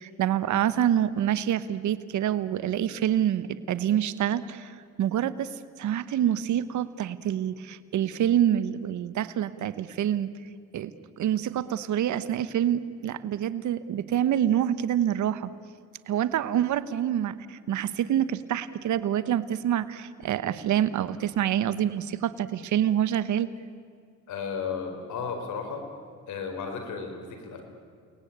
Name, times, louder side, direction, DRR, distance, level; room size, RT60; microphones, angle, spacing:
voice 1, 0.0-10.3 10.7-15.5 16.1-23.5, right 10 dB, 75° right, 14 dB, 1.1 m, -27 dB
voice 2, 24.3-25.9 26.3-27.6, left 5 dB, 75° left, 4 dB, 4.8 m, -34 dB
29.5 x 19.5 x 8.8 m, 2.2 s
cardioid pair, 90°, 30 cm